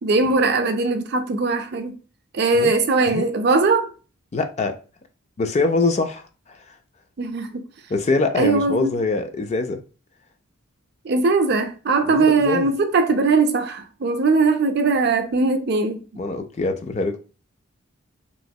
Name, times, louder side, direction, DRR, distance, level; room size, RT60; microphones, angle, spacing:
voice 1, 0.0-2.0 2.3-3.9 7.2-7.6 8.4-8.9 11.0-16.0, right 3 dB, 50° right, 0.4 m, -20 dB
voice 2, 4.3-4.8 5.4-6.6 7.9-9.8 12.1-12.7 16.2-17.2, left 3 dB, 30° left, 0.3 m, -23 dB
3.0 x 2.8 x 2.6 m
head